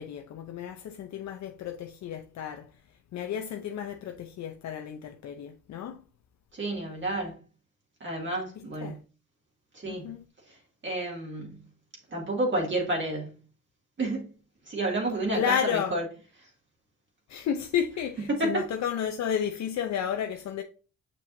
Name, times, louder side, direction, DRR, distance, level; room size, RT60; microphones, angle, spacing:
voice 1, 0.0-2.7 3.1-6.0 8.6-9.0 9.8-10.2 15.3-15.9 17.3-20.6, left 8 dB, 65° left, 0.7 m, -32 dB
voice 2, 6.5-7.3 8.0-8.9 9.7-10.1 10.5-10.6 10.8-11.6 12.1-13.3 14.0-14.2 14.7-16.0 18.3-18.7, right 2 dB, 40° right, 2.5 m, -30 dB
7.0 x 5.4 x 2.7 m
cardioid pair, 90°, 30 cm